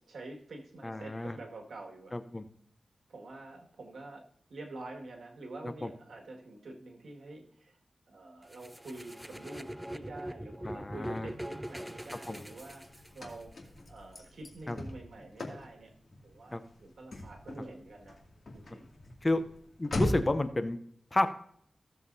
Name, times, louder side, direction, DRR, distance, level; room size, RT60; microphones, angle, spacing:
voice 1, 0.0-2.2 3.1-7.8 8.1-13.5 13.9-15.9 16.2-18.2 18.5-18.9 19.3-19.4, right 2 dB, 85° right, 1 dB, 1.9 m, -47 dB
voice 2, 0.8-1.4 2.1-2.4 5.6-5.9 10.6-11.3 12.3-12.4 14.7-14.8 16.5-16.6 19.2-19.4 19.8-20.8 21.1-21.3, left 2 dB, 25° left, 10 dB, 0.7 m, -31 dB
sound 1, 8.5-13.4, right 1 dB, 5° right, 0.4 m, -42 dB
Car / Slam, 11.8-20.5, left 1 dB, 55° left, 2.3 m, -40 dB
15.5 x 7.3 x 2.7 m, 0.67 s
wide cardioid pair, 90°, 0 cm